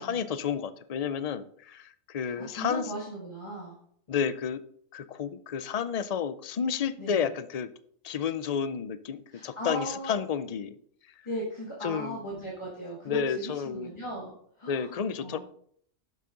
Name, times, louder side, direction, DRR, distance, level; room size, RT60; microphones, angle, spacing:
voice 1, 0.0-2.9 4.1-4.6 4.9-7.7 8.0-10.8 11.8-12.2 13.0-13.9 14.7-15.4, left 7 dB, 60° left, 13 dB, 0.4 m, -31 dB
voice 2, 2.4-3.8 7.0-7.2 9.3-10.2 11.3-15.4, equal, 20° left, -3 dB, 2.0 m, -37 dB
11.5 x 7.4 x 3.8 m, 0.63 s
omnidirectional pair, 1.4 m